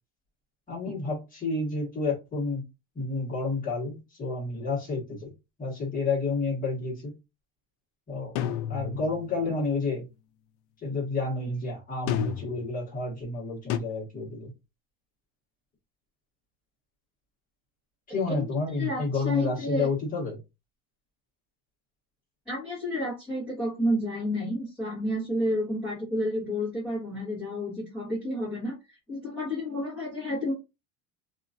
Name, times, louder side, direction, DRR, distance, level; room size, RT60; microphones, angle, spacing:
voice 1, 0.7-2.6 2.9-5.3 5.6-7.1 8.1-8.4 8.7-10.1 10.8-14.5 18.1-20.4, left 3 dB, 25° left, -3 dB, 1.4 m, -30 dB
sound 1, 8.3-9.3 12.1-12.7 13.7-13.8, left 10 dB, 70° left, 0.5 m, -30 dB
voice 2, 18.8-19.9 22.5-28.7 29.1-30.5, equal, 5° right, -8 dB, 1.4 m, -30 dB
2.9 x 2.4 x 2.5 m, 0.25 s
cardioid pair, 145°, 35 cm